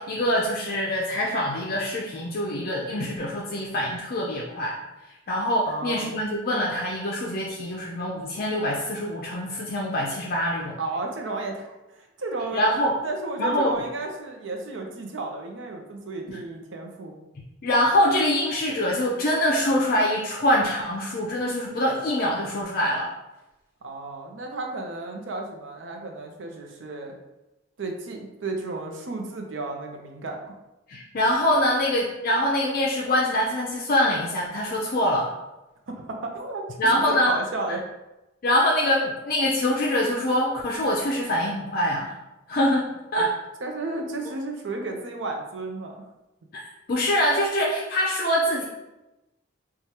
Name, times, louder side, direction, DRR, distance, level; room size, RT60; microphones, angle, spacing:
voice 1, 0.0-4.8 5.0-10.8 12.5-13.0 13.4-13.7 16.3-16.4 17.6-23.1 30.9-35.3 36.8-37.3 38.4-42.1 42.5-43.3 46.5-48.6, left 1 dB, 50° left, -3 dB, 0.5 m, -24 dB
voice 2, 5.7-6.1 10.8-12.6 13.0-17.2 23.8-27.2 27.8-30.4 35.9-36.6 36.9-37.0 37.3-37.8 43.2-43.3 43.6-46.0, right 2 dB, 70° right, 2 dB, 0.6 m, -33 dB
4.6 x 2.3 x 2.8 m, 0.99 s
head